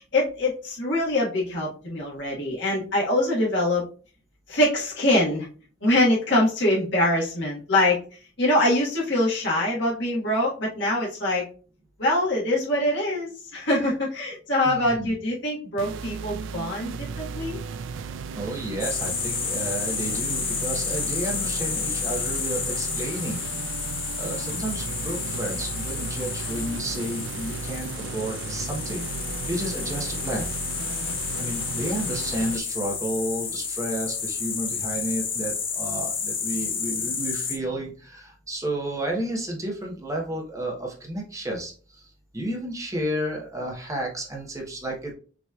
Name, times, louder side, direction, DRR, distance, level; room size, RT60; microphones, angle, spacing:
voice 1, 0.0-3.8 4.5-5.5 5.8-8.0 8.4-11.4 12.0-17.6, left 1 dB, 65° left, -4 dB, 1.6 m, -24 dB
voice 2, 14.6-15.1 18.3-23.4 24.2-29.0 29.5-30.5 31.4-45.1, right 1 dB, 15° right, -1 dB, 1.0 m, -31 dB
Epic Hook Synth, 15.8-32.6, right 5 dB, 80° right, 0.3 m, -35 dB
sound 1, 18.8-37.6, left 6 dB, 85° left, 1.3 m, -31 dB
5.9 x 3.1 x 2.4 m, 0.39 s
head